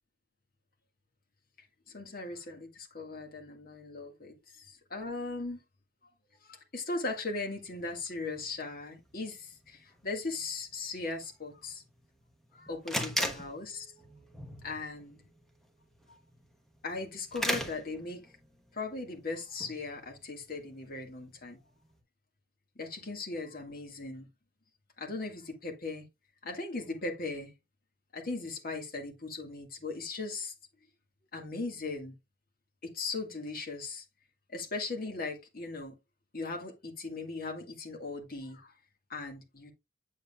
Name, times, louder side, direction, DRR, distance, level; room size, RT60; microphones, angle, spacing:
voice 1, 1.9-5.6 6.4-11.8 12.5-13.9 14.6-15.3 16.1-16.2 16.8-18.3 18.7-21.6 22.8-24.3 25.0-26.1 26.4-27.5 28.1-30.5 31.3-32.1 32.8-34.0 34.5-36.0 36.3-38.7 39.1-39.7, left 3 dB, 45° left, 1.8 m, -38 dB
sound 1, 7.6-22.0, equal, ahead, 1.0 m, -41 dB
7.8 x 7.3 x 2.3 m
head